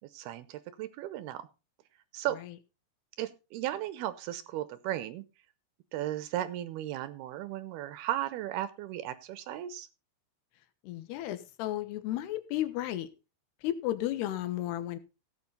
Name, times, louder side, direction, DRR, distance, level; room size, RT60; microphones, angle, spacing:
voice 1, 0.1-1.5 2.1-2.4 3.2-5.3 5.9-9.9, right 13 dB, 75° right, 14 dB, 2.5 m, -35 dB
voice 2, 10.8-13.1 13.6-15.0, left 13 dB, 75° left, 11 dB, 3.1 m, -33 dB
16.5 x 8.7 x 4.0 m, 0.30 s
omnidirectional pair, 5.1 m